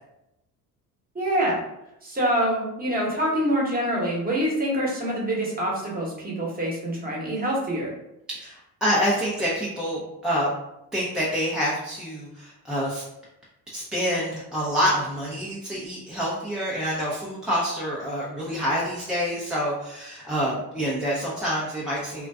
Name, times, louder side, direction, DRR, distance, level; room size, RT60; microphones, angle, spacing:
voice 1, 1.1-1.6 2.0-7.9, right 1 dB, 20° right, -4 dB, 0.9 m, -25 dB
voice 2, 8.3-10.5 10.9-13.0 13.7-22.3, equal, ahead, -7 dB, 0.4 m, -27 dB
2.5 x 2.2 x 2.3 m, 0.86 s
hypercardioid pair, 65°, 45 cm